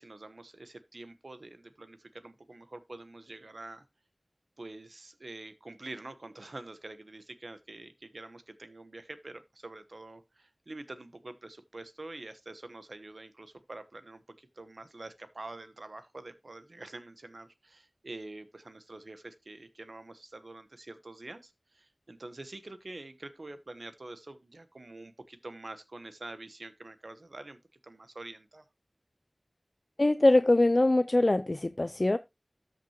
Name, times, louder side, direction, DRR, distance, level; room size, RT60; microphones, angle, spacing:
voice 1, 0.0-3.8 4.6-28.7, right 2 dB, 70° right, 1.0 m, -46 dB
voice 2, 30.0-32.2, left 2 dB, 50° left, 0.4 m, -23 dB
13.0 x 6.0 x 2.9 m
wide cardioid pair, 50°, 0 cm